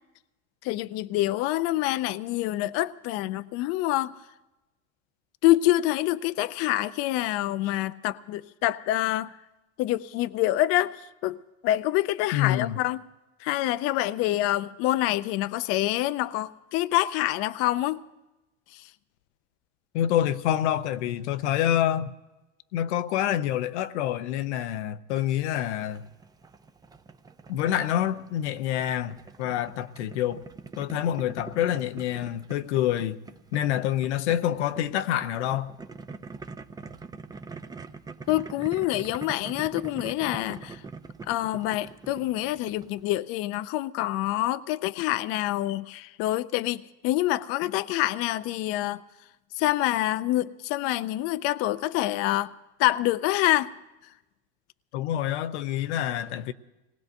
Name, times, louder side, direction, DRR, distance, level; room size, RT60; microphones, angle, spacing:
voice 1, 0.6-4.1 5.4-9.3 9.8-13.0 13.4-18.0 38.3-40.8 41.3-49.0 49.6-52.5 52.8-53.7, left 15 dB, 45° left, 0.4 m, -26 dB
voice 2, 12.3-12.8 19.9-22.1 22.7-26.1 27.5-30.4 30.8-33.2 33.5-35.7 54.9-56.5, left 11 dB, 90° left, 0.7 m, -27 dB
Boiling, 25.1-43.2, right 4 dB, 10° right, 0.5 m, -44 dB
25.5 x 19.0 x 2.6 m
supercardioid pair, 120°, 34 cm